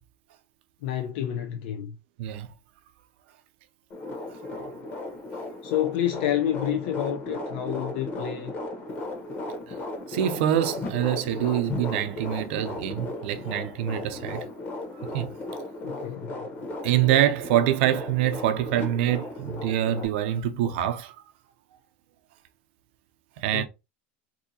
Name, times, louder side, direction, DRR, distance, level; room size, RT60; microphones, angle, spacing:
voice 1, 0.8-2.0 5.6-8.5 15.8-16.4 23.5-23.7, left 11 dB, 70° left, 0.5 m, -29 dB
sound 1, 3.9-20.1, left 2 dB, 30° left, 0.9 m, -36 dB
voice 2, 10.1-14.5 15.1-15.3 16.8-21.1 23.4-23.7, right 11 dB, 70° right, 0.6 m, -25 dB
3.6 x 2.7 x 2.7 m
supercardioid pair, 145°, 6 cm